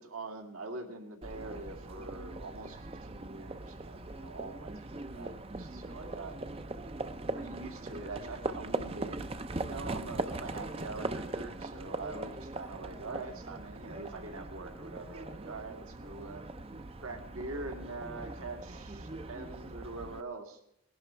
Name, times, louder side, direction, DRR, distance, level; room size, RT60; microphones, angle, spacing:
voice 1, 0.0-6.4 7.3-16.4 17.0-20.6, right 3 dB, 75° right, 4 dB, 2.4 m, -44 dB
Livestock farm animals working animals, 1.2-20.2, right 2 dB, 25° right, 0.6 m, -40 dB
19.5 x 11.0 x 4.5 m, 0.77 s
head